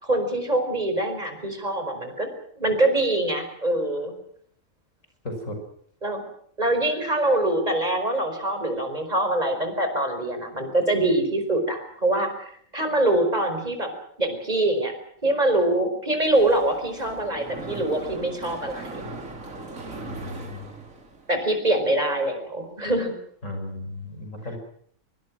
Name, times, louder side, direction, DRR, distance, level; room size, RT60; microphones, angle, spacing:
voice 1, 0.0-2.3 2.6-4.1 6.0-6.2 6.6-13.9 14.2-14.9 15.2-19.1 21.3-23.1, right 1 dB, 30° right, 6 dB, 5.1 m, -24 dB
voice 2, 5.2-5.6 20.1-20.8 23.4-24.6, left 1 dB, 75° left, 5 dB, 6.7 m, -35 dB
Mechanisms, 16.2-21.4, right 2 dB, 80° right, 3.3 m, -39 dB
24.0 x 24.0 x 6.3 m, 0.63 s
omnidirectional pair, 1.4 m